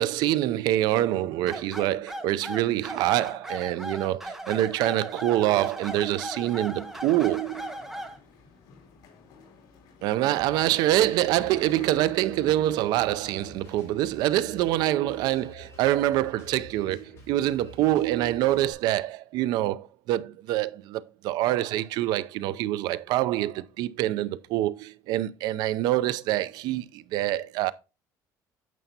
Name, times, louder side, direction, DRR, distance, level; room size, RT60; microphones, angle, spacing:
voice 1, 0.0-7.8 10.0-27.7, right 14 dB, 70° right, 0.5 m, -25 dB
sound 1, 1.5-8.2, right 1 dB, 5° right, 0.9 m, -37 dB
sound 2, 5.9-12.9, left 5 dB, 65° left, 2.4 m, -53 dB
Drum kit, 10.4-18.7, left 4 dB, 35° left, 4.6 m, -50 dB
9.2 x 6.9 x 2.7 m
cardioid pair, 155°, 7 cm